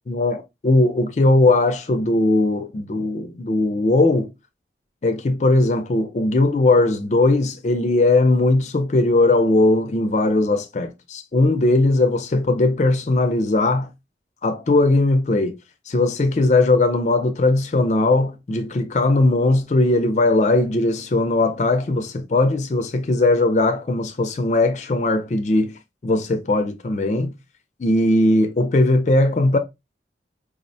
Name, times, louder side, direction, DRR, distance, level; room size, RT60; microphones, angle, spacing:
voice 1, 0.1-4.3 5.0-13.9 14.4-15.5 15.9-25.7 26.0-27.3 27.8-29.6, left 2 dB, 40° left, 0.4 m, -19 dB
4.8 x 2.0 x 2.6 m
head